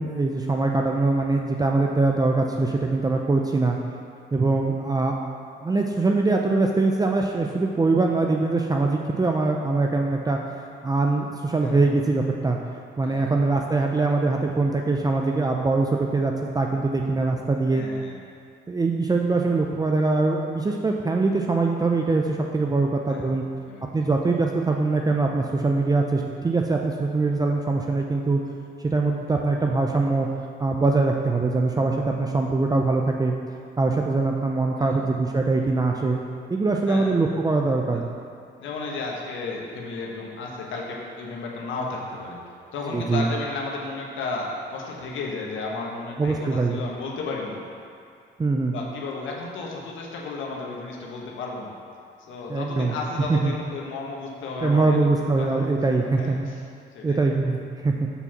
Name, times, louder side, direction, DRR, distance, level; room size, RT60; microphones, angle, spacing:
voice 1, 0.0-3.8 4.3-5.1 5.6-10.4 10.8-12.6 13.0-17.8 18.7-23.4 23.9-28.4 28.8-30.3 30.6-33.3 33.8-36.2 36.5-38.1 42.9-43.3 46.2-46.8 48.4-48.8 52.5-52.9 53.3-53.6 54.6-56.5 57.0-58.1, right 3 dB, 20° right, 1 dB, 0.5 m, -23 dB
voice 2, 13.0-13.4 13.9-14.0 17.7-18.2 23.1-24.1 34.8-35.1 36.9-37.2 37.8-38.0 38.6-42.4 42.7-47.6 48.7-51.7 52.2-55.0 55.4-55.7 56.2-56.6 56.9-57.3, left 3 dB, 80° left, -1 dB, 1.1 m, -33 dB
7.0 x 4.5 x 5.8 m, 2.4 s
cardioid pair, 90°, 20 cm